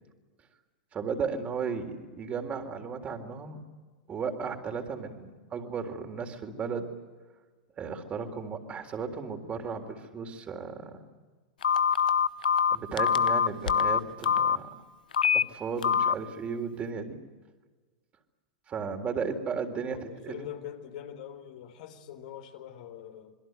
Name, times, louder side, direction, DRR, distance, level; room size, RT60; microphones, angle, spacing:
voice 1, 0.9-3.6 4.1-6.9 7.8-11.0 12.7-14.7 15.5-17.2 18.7-20.5, right 5 dB, 30° right, 5 dB, 3.8 m, -35 dB
Telephone, 11.6-14.6 15.1-15.4 15.8-16.1, left 7 dB, 80° left, 0.8 m, -24 dB
voice 2, 19.8-23.4, left 10 dB, 60° left, 6 dB, 3.8 m, -44 dB
28.0 x 22.0 x 8.0 m, 1.4 s
hypercardioid pair, 105°, 4 cm